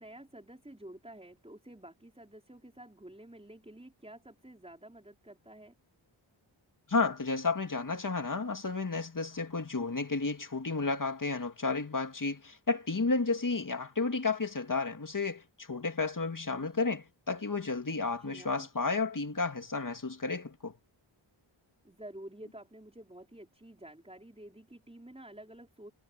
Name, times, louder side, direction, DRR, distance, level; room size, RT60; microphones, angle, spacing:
voice 1, 0.0-5.7 18.2-18.7 21.8-25.9, right 1 dB, 10° right, 5.0 m, -50 dB
voice 2, 6.9-20.7, left 3 dB, 40° left, 2.5 m, -32 dB
wide cardioid pair, 65°, 48 cm